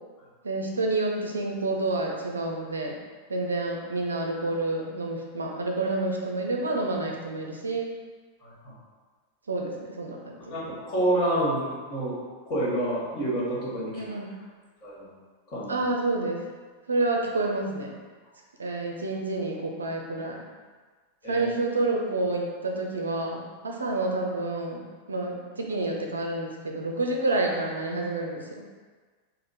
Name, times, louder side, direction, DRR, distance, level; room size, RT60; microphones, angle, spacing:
voice 1, 0.4-2.9 3.3-7.9 9.5-10.5 14.0-14.4 15.7-16.4 16.9-18.0 18.6-20.4 21.2-24.8 25.1-28.7, right 2 dB, 75° right, 1 dB, 0.5 m, -29 dB
voice 2, 8.4-8.7 10.5-12.1 12.5-14.0 14.8-15.1 15.5-15.8 21.2-21.4, right 1 dB, 35° left, -7 dB, 1.4 m, -28 dB
3.5 x 2.1 x 4.1 m, 1.4 s
figure-of-eight pair, 90°, 0 cm